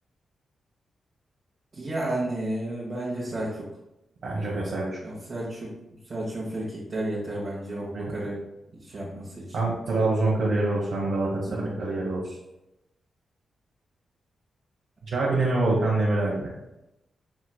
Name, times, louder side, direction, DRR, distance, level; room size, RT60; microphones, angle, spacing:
voice 1, 1.7-3.6 5.0-5.7 6.1-8.4 8.8-9.6 11.4-11.7, right 1 dB, 50° right, -8 dB, 1.2 m, -32 dB
voice 2, 4.2-5.0 7.9-8.1 9.5-12.3 15.1-16.5, right 2 dB, 70° right, -6 dB, 0.9 m, -25 dB
5.8 x 3.1 x 2.3 m, 0.92 s
supercardioid pair, 45°, 0 cm